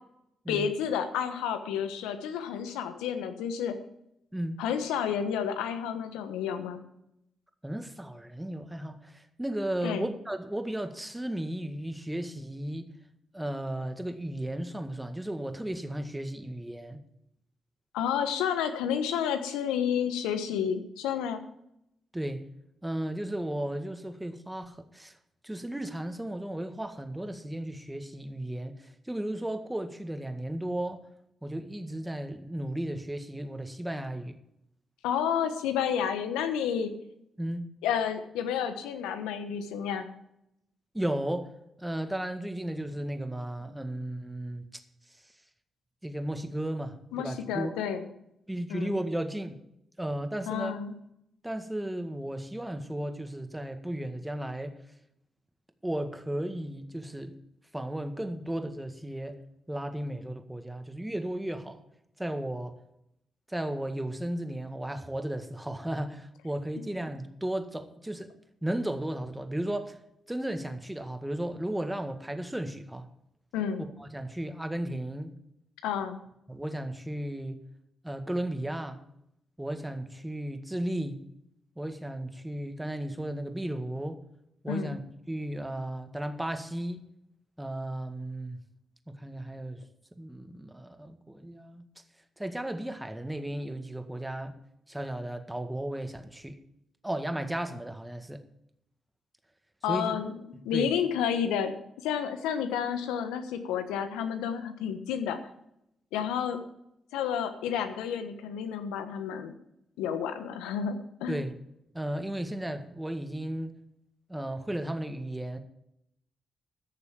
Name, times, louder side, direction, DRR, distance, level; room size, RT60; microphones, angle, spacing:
voice 1, 0.5-3.8 4.6-6.8 9.8-10.1 17.9-21.4 35.0-36.9 37.8-40.1 47.1-48.0 48.7-48.9 50.5-50.9 73.5-73.8 75.8-76.2 84.7-85.0 99.8-100.3 100.6-101.7 102.0-105.4 106.1-106.6 107.1-109.5 110.0-111.4, left 8 dB, 85° left, 1.2 m, -30 dB
voice 2, 7.6-12.9 13.3-17.0 22.1-22.4 22.8-25.2 25.4-31.0 31.4-34.4 37.4-37.7 40.9-41.5 41.8-44.7 46.0-47.7 48.5-49.6 50.0-50.8 51.4-54.7 55.8-57.3 57.7-59.4 59.7-61.8 62.2-62.7 63.5-68.3 68.6-70.0 70.3-73.1 74.0-75.4 76.5-77.6 78.0-79.0 79.6-81.2 81.8-84.2 84.6-85.0 85.3-87.1 87.6-88.6 89.1-89.8 90.2-91.9 92.4-94.5 94.9-96.6 97.0-98.4 99.9-100.2 100.7-100.9 111.3-111.5 111.9-113.8 114.3-115.6, right 1 dB, 10° right, 1.8 m, -34 dB
14.5 x 6.8 x 7.3 m
hypercardioid pair, 40°, 0 cm